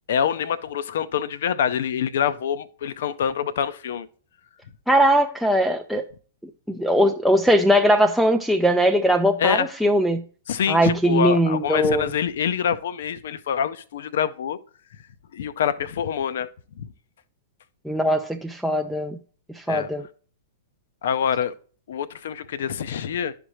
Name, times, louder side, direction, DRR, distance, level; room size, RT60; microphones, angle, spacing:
voice 1, 0.1-4.1 9.4-9.7 10.5-14.6 15.3-16.5 16.8-16.9 19.7-19.9 21.0-21.5 21.9-23.3, left 8 dB, 60° left, 0.5 m, -25 dB
voice 2, 4.9-6.0 6.7-10.2 10.7-12.1 17.9-19.2 19.5-20.0, equal, ahead, 0.4 m, -20 dB
11.5 x 5.1 x 3.0 m
figure-of-eight pair, 105°, 0 cm